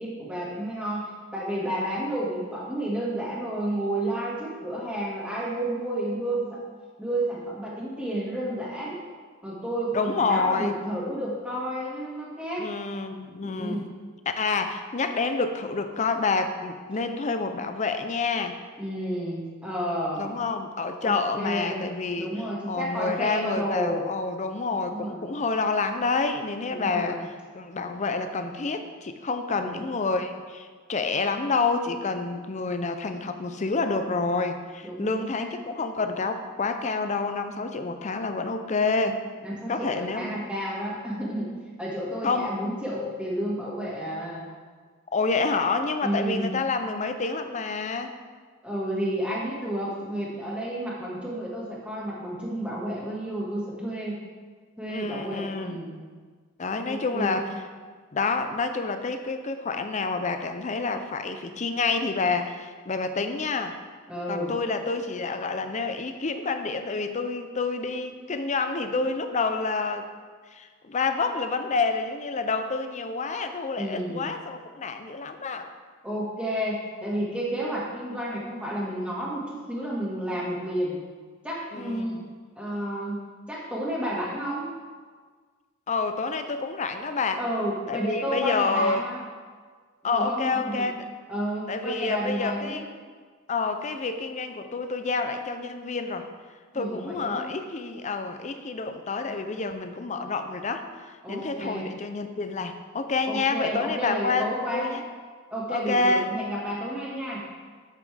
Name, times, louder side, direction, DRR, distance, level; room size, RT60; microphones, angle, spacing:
voice 1, 0.0-6.6 7.0-9.0 9.4-12.7 13.5-13.9 18.8-20.3 21.0-21.8 22.2-24.0 24.9-25.3 26.7-27.2 29.6-29.8 34.8-35.5 39.4-41.5 41.8-44.5 46.0-46.5 48.6-54.2 54.8-56.0 56.9-57.4 64.1-64.5 73.8-74.3 76.0-81.0 81.4-82.2 82.6-83.2 83.5-84.7 87.4-89.2 90.0-90.9 91.3-92.8 96.7-97.5 101.2-101.9 103.3-105.0 105.5-107.4, right 1 dB, 5° right, -6 dB, 1.7 m, -31 dB
voice 2, 9.9-10.8 12.6-13.8 14.4-18.6 20.2-22.3 22.6-27.2 27.5-39.2 39.7-40.3 42.2-42.5 45.1-48.1 54.9-55.8 56.6-57.5 58.1-63.8 64.3-70.1 70.5-75.7 81.7-82.3 85.9-87.4 87.9-89.0 90.0-91.0 91.7-92.8 93.5-96.3 96.7-105.0 105.7-106.3, left 4 dB, 35° left, 8 dB, 0.5 m, -28 dB
8.2 x 7.5 x 3.4 m, 1.5 s
head